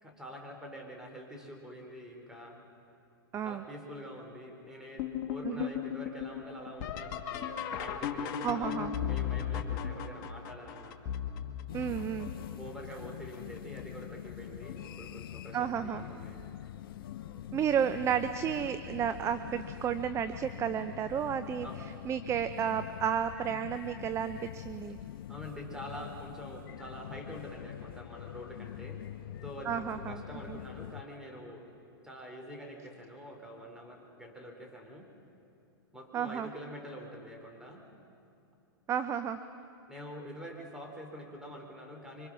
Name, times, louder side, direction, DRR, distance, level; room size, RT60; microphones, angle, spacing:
voice 1, 0.0-2.6 3.4-11.0 12.5-16.4 21.6-21.8 25.3-29.0 29.4-31.6 32.0-35.1 35.9-37.8 39.9-42.3, equal, 5° right, 0 dB, 3.6 m, -46 dB
voice 2, 3.3-3.6 5.4-5.7 8.4-9.0 11.7-12.3 15.5-16.0 17.5-21.7 22.1-25.0 29.7-30.2 30.5-30.6 36.1-36.5 38.9-39.4, right 8 dB, 20° right, 11 dB, 0.6 m, -32 dB
sound 1, 5.0-12.7 13.3-13.9 14.3-15.0 16.2-16.3 17.0-17.4 19.5-19.6 22.0-22.1, left 9 dB, 45° left, 1.7 m, -37 dB
sound 2, 11.7-31.0, left 12 dB, 65° left, 0.6 m, -44 dB
26.0 x 24.5 x 6.1 m, 2.6 s
hypercardioid pair, 120°, 13 cm